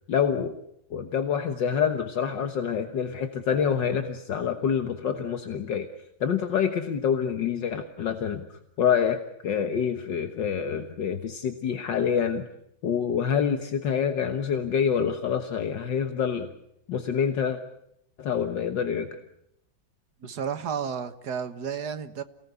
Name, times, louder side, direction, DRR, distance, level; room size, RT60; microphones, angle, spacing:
voice 1, 0.1-0.5 0.9-5.9 6.2-8.5 8.8-12.5 12.8-16.5 16.9-17.6 18.2-19.2, left 7 dB, 70° left, 1.9 m, -26 dB
voice 2, 20.2-22.2, right 7 dB, 60° right, 1.7 m, -32 dB
28.5 x 18.5 x 8.3 m
omnidirectional pair, 2.1 m